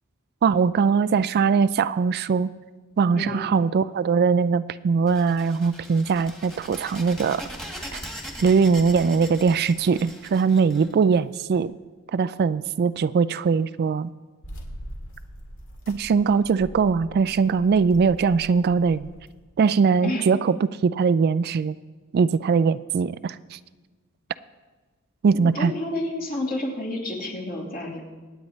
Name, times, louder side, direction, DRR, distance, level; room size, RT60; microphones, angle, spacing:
voice 1, 0.4-2.5 3.0-7.4 7.9-8.0 8.4-11.7 12.1-14.1 15.9-19.1 19.6-20.6 20.8-21.8 22.1-23.6 25.2-25.7, right 5 dB, 50° right, 16 dB, 0.3 m, -21 dB
sound 1, 5.1-11.6, equal, ahead, 1.6 m, -40 dB
sound 2, 14.4-19.3, equal, 65° left, 2.0 m, -42 dB
voice 2, 25.4-28.0, left 1 dB, 45° left, -2 dB, 2.9 m, -30 dB
25.0 x 9.1 x 3.2 m, 1.4 s
head